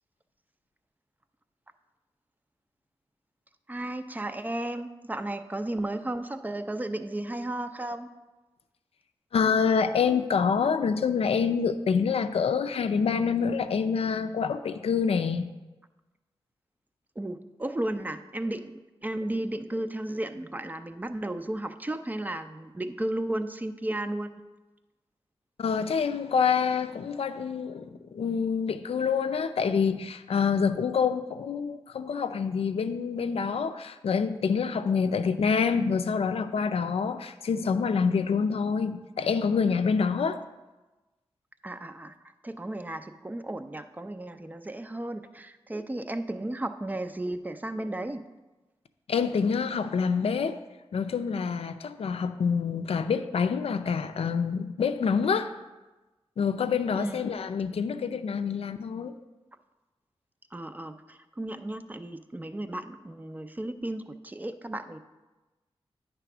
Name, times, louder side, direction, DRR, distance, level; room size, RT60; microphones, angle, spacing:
voice 1, 3.7-8.1 17.2-18.7 19.0-24.3 41.6-48.2 56.9-57.2 60.5-65.0, right 1 dB, 15° right, 9 dB, 0.5 m, -34 dB
voice 2, 9.3-15.5 25.6-40.4 49.1-50.6 50.9-55.5 56.4-59.1, left 6 dB, 75° left, 10 dB, 0.4 m, -26 dB
9.1 x 3.4 x 6.0 m, 1.1 s
cardioid pair, 70°, 10 cm